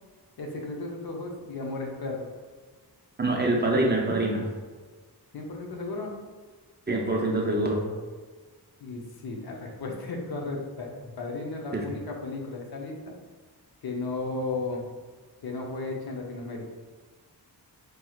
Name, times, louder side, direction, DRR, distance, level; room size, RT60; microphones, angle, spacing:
voice 1, 0.4-2.3 5.3-6.1 8.8-13.0 13.8-14.8 15.4-16.6, left 3 dB, 65° left, 0 dB, 0.7 m, -34 dB
voice 2, 3.2-4.4 6.9-7.8 11.7-11.8, right 2 dB, 25° right, -1 dB, 0.4 m, -25 dB
4.5 x 3.1 x 2.3 m, 1.4 s
wide cardioid pair, 160°, 40 cm